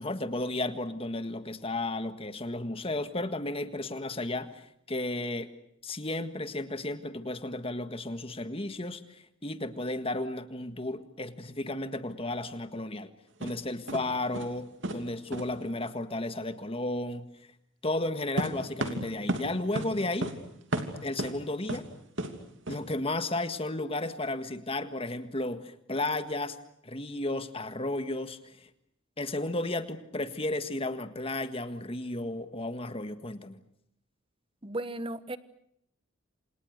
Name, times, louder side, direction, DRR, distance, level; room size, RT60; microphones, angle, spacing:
voice 1, 0.0-5.5 5.8-13.1 13.4-17.3 17.8-20.4 21.0-21.9 22.7-26.6 26.8-28.7 29.2-33.6, left 2 dB, 25° left, 10 dB, 1.7 m, -33 dB
sound 1, 13.4-13.5 13.9-14.1 14.3-14.6 14.8-15.0 15.3-15.5 18.4-19.5 19.8-19.9 20.2-20.4 20.7-21.3 21.7-21.8 22.2-22.3 22.7-22.8, right 1 dB, 60° right, 3.0 m, -32 dB
voice 2, 34.6-35.4, right 1 dB, 25° right, 14 dB, 1.2 m, -35 dB
28.0 x 28.0 x 6.6 m, 0.73 s
head